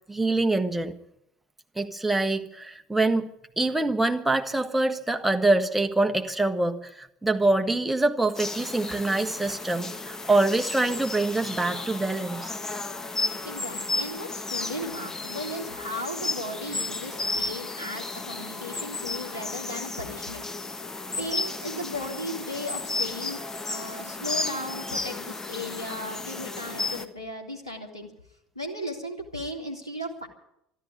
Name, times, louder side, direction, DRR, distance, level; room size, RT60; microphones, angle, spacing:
voice 1, 0.1-0.9 1.7-3.3 3.6-12.5, right 2 dB, 5° right, 4 dB, 1.5 m, -25 dB
sound 1, 8.3-27.0, left 3 dB, 20° left, 1.3 m, -33 dB
voice 2, 13.4-20.4 21.2-23.4 23.7-28.1 28.5-30.3, left 1 dB, 85° left, 1 dB, 2.4 m, -36 dB
13.0 x 11.5 x 9.5 m, 0.77 s
figure-of-eight pair, 65°, 3 cm